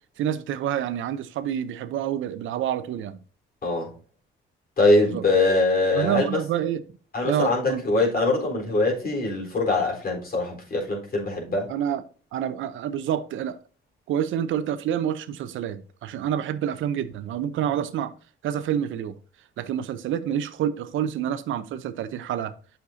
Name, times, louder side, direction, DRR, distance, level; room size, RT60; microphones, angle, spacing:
voice 1, 0.2-3.2 5.0-5.2 5.9-6.8 7.2-7.8 11.7-12.0 12.3-13.6 14.1-18.1 18.4-19.2 19.6-22.5, right 10 dB, 80° right, 0.8 m, -28 dB
voice 2, 3.6-3.9 4.8-6.4 7.1-11.7, left 2 dB, 50° left, 4.1 m, -23 dB
9.2 x 6.6 x 2.7 m
cardioid pair, 90°, 20 cm